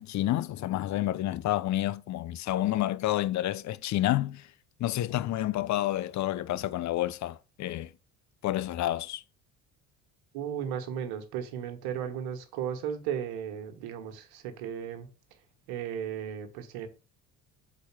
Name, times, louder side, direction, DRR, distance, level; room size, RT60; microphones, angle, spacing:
voice 1, 0.0-4.5 4.8-7.9 8.4-9.2, left 14 dB, 45° left, 0.6 m, -29 dB
voice 2, 10.3-15.4 15.7-16.9, right 8 dB, 75° right, 1.4 m, -35 dB
5.0 x 4.2 x 6.0 m
hypercardioid pair, 75°, 38 cm